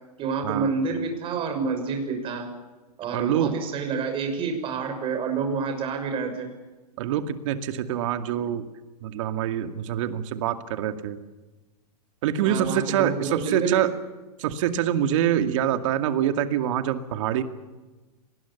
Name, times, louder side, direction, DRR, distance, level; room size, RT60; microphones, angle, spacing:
voice 1, 0.2-2.5 3.0-6.5 12.4-13.8, right 5 dB, 25° right, 5 dB, 6.1 m, -28 dB
voice 2, 3.1-3.6 7.0-8.7 9.0-11.2 12.2-13.9 14.4-17.4, right 10 dB, 50° right, 8 dB, 2.3 m, -25 dB
26.0 x 20.0 x 7.2 m, 1.2 s
hypercardioid pair, 130°, 20 cm